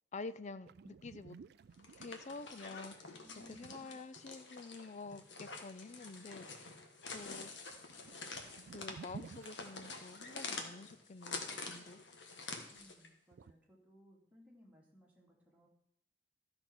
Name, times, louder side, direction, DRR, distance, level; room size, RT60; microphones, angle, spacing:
voice 1, 0.1-1.4 2.0-3.1 3.5-6.8 7.1-7.5 7.8-8.1 8.7-12.0, left 3 dB, 40° left, 13 dB, 0.5 m, -49 dB
sound 1, 0.7-4.5 7.1-7.3 7.6-10.5 13.3-13.5, right 5 dB, 60° right, 0.3 m, -55 dB
sound 2, 1.7-13.1, left 4 dB, 70° left, 1.6 m, -47 dB
voice 2, 3.1-4.0 12.7-15.7, left 1 dB, 10° right, -3 dB, 2.6 m, -62 dB
13.5 x 5.8 x 6.1 m, 0.77 s
head